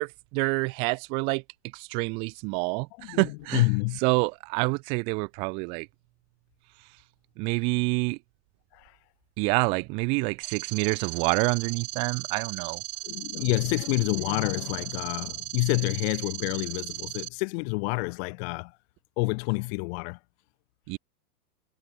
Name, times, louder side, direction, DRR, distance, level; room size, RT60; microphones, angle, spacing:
voice 1, 0.0-1.4 1.7-3.7 4.0-5.9 7.4-8.2 9.4-12.8 20.9-21.0, right 32 dB, 15° right, 0.4 m, -27 dB
voice 2, 3.0-4.0 8.7-9.0 13.0-18.8 19.2-20.2, left 30 dB, 40° left, 4.4 m, -28 dB
sound 1, 10.4-17.3, right 14 dB, 65° right, 4.2 m, -37 dB
supercardioid pair, 160°, 47 cm